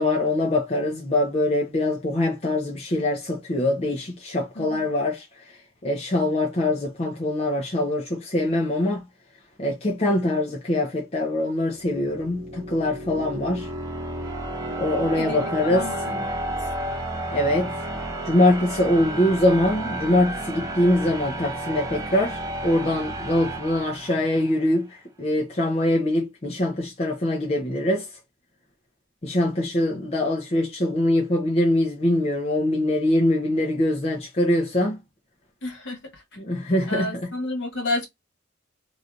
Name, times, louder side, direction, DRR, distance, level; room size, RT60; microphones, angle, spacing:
voice 1, 0.0-5.3 5.8-9.0 9.6-13.7 14.8-15.9 17.3-17.7 18.2-28.1 29.2-35.0 36.4-37.3, left 1 dB, 30° left, 0.6 m, -23 dB
voice 2, 4.5-4.9 13.1-13.2 15.2-16.5 35.6-36.2 36.9-38.1, left 2 dB, 55° left, 1.4 m, -31 dB
sound 1, 11.8-24.7, right 1 dB, 15° right, 0.6 m, -32 dB
3.1 x 2.6 x 2.4 m
head